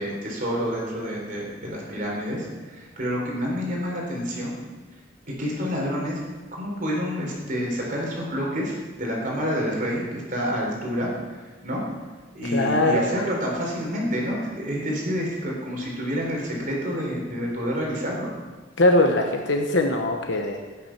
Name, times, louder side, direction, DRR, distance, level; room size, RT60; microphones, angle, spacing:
voice 1, 0.0-4.6 5.4-6.2 6.5-11.8 12.3-18.3, equal, 45° right, -2 dB, 3.7 m, -28 dB
voice 2, 12.5-13.1 18.8-20.6, left 2 dB, 70° left, 3 dB, 1.1 m, -21 dB
15.0 x 9.8 x 5.9 m, 1.3 s
head